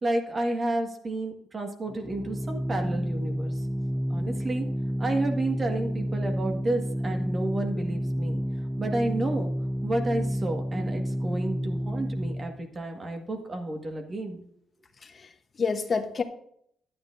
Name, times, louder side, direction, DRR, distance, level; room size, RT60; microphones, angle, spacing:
voice 1, 0.0-3.5 4.1-4.7 5.0-8.4 8.8-9.5 9.8-14.4, right 2 dB, 35° right, 4 dB, 1.7 m, -31 dB
Organ, 1.9-12.6, equal, ahead, 0.4 m, -30 dB
voice 2, 15.0-16.2, left 5 dB, 40° left, 6 dB, 1.1 m, -29 dB
12.0 x 9.5 x 2.6 m, 0.68 s
cardioid pair, 90°, 0 cm